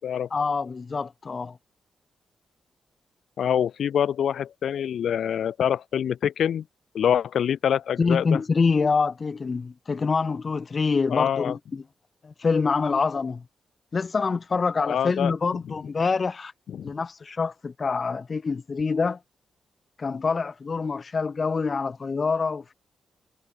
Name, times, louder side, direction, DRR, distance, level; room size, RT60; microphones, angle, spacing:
voice 1, 0.3-1.6 8.0-11.8 12.2-13.4 13.9-16.5 16.8-19.2 20.0-22.7, left 4 dB, 40° left, 1.3 m, -26 dB
voice 2, 3.4-6.6 6.9-8.4 11.1-11.6 14.9-15.3 16.7-16.9, left 9 dB, 80° left, 1.6 m, -25 dB
cardioid pair, 95°, 0 cm